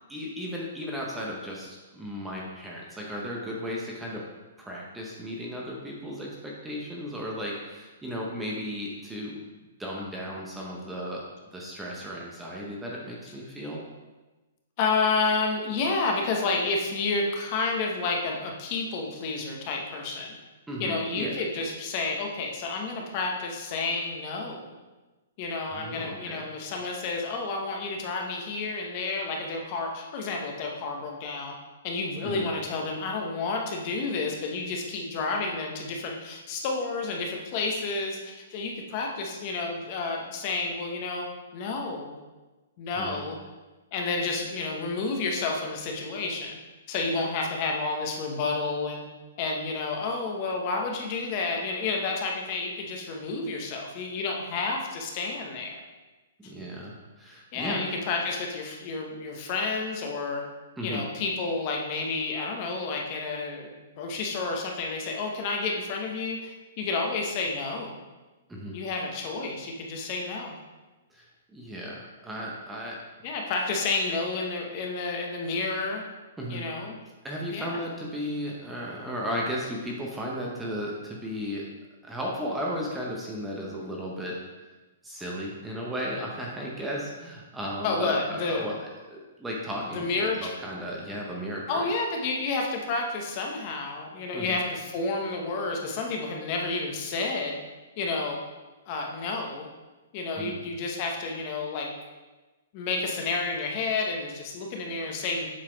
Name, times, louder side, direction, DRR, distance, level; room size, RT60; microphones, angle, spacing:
voice 1, 0.1-4.2 4.6-9.4 9.8-11.2 11.5-13.8 20.7-21.3 25.7-26.4 32.2-32.4 42.9-43.2 56.4-57.9 60.8-61.0 68.5-68.8 71.1-73.0 76.4-76.7 77.2-81.6 82.0-84.4 85.0-88.7 89.1-91.8 94.3-94.6 100.4-100.6, equal, 5° right, -3 dB, 0.7 m, -35 dB
voice 2, 14.8-20.4 20.8-24.7 25.4-31.5 31.8-41.3 41.5-42.2 42.8-43.4 43.9-46.6 46.9-49.1 49.4-55.8 56.4-56.5 57.5-60.4 60.8-67.9 68.7-70.6 73.2-76.0 76.5-77.0 77.5-77.8 87.8-88.6 89.9-90.5 91.7-97.6 98.0-98.4 98.9-99.7 100.1-101.9 102.7-105.5, left 3 dB, 30° left, 1 dB, 1.0 m, -30 dB
7.5 x 4.0 x 5.0 m, 1.2 s
hypercardioid pair, 165°, 0 cm